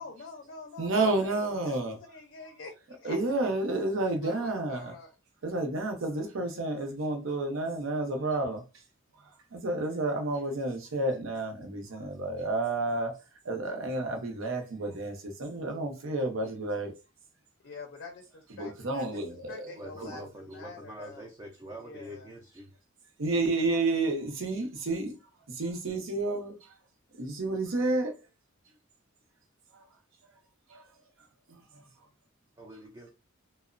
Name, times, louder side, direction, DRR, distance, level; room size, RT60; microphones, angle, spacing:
voice 1, 0.0-3.2 4.0-5.1 17.6-19.2 19.5-21.3 21.8-22.3, left 4 dB, 50° left, 0.5 m, -46 dB
voice 2, 0.8-2.0 3.0-4.9 5.4-8.6 9.2-13.1 13.4-16.9 18.5-19.7 20.0-20.2 23.2-25.1 25.5-26.8 27.2-28.1 29.7-29.9 30.7-30.9 31.5-31.8, right 2 dB, 65° right, 0.6 m, -30 dB
voice 3, 19.7-22.7 32.6-33.1, right 1 dB, 20° right, 0.4 m, -45 dB
2.8 x 2.0 x 2.4 m
head